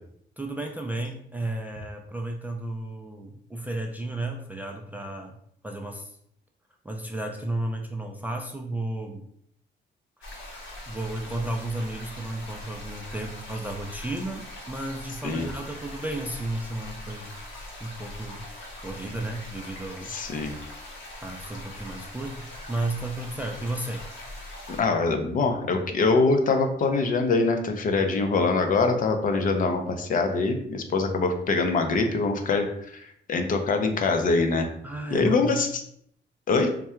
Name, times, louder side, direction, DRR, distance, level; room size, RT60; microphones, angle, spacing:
voice 1, 0.4-5.4 5.6-6.2 6.8-9.2 10.9-17.3 17.8-18.5 18.8-20.1 21.2-24.0 34.8-35.6, right 2 dB, 10° right, 1 dB, 0.3 m, -33 dB
sound 1, 10.2-24.8, left 1 dB, 90° left, 1.1 m, -41 dB
voice 2, 20.1-20.6 24.7-34.7 35.1-35.7 36.5-36.7, left 3 dB, 45° left, 5 dB, 0.5 m, -24 dB
3.5 x 2.2 x 4.3 m, 0.69 s
cardioid pair, 160°, 19 cm